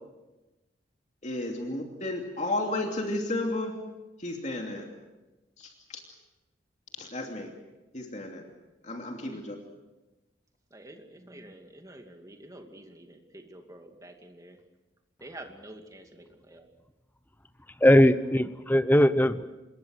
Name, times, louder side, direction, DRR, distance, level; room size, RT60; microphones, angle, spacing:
voice 1, 1.2-3.7 4.2-4.9 5.6-6.0 7.0-7.5 7.9-8.5 8.8-9.6, left 2 dB, 40° left, 2 dB, 2.8 m, -33 dB
voice 2, 10.7-14.6 15.2-16.7, right 1 dB, 20° right, 4 dB, 2.4 m, -48 dB
voice 3, 17.8-19.5, equal, 10° left, 11 dB, 0.9 m, -20 dB
27.0 x 21.5 x 6.5 m, 1.1 s
head